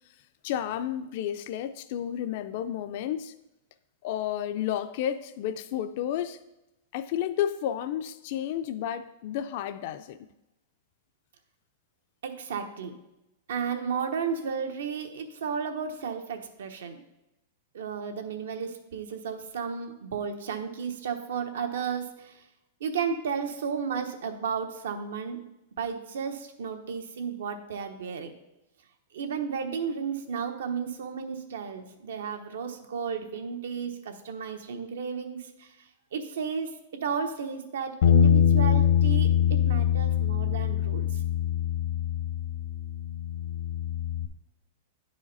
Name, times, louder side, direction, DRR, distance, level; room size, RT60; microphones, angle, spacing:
voice 1, 0.4-3.3 4.0-6.4 6.9-10.2, left 10 dB, 45° left, 0.3 m, -31 dB
voice 2, 12.2-12.9 13.5-17.0 17.7-22.4 22.8-25.4 25.8-28.3 29.1-35.7 36.1-36.7 37.0-41.2, right 6 dB, 90° right, 1.0 m, -33 dB
Bass guitar, 38.0-44.3, left 9 dB, 70° left, 0.8 m, -24 dB
9.4 x 4.9 x 4.1 m
supercardioid pair, 170°, 0 cm